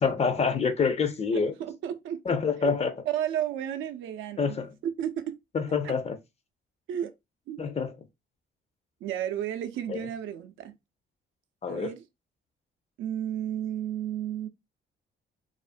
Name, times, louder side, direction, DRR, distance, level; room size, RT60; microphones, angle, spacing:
voice 1, 0.0-1.5 2.3-3.0 4.4-4.8 5.5-6.2 7.6-7.9 9.9-10.0 11.6-11.9, left 5 dB, 35° left, 0.5 m, -26 dB
voice 2, 1.6-2.2 2.6-2.8 3.1-4.6 4.8-5.4 5.8-5.9 6.9-7.1 7.5-7.6 9.0-10.7 11.7-12.0 13.0-14.5, right 10 dB, 80° right, 0.4 m, -32 dB
2.4 x 2.1 x 2.4 m
cardioid pair, 90°, 20 cm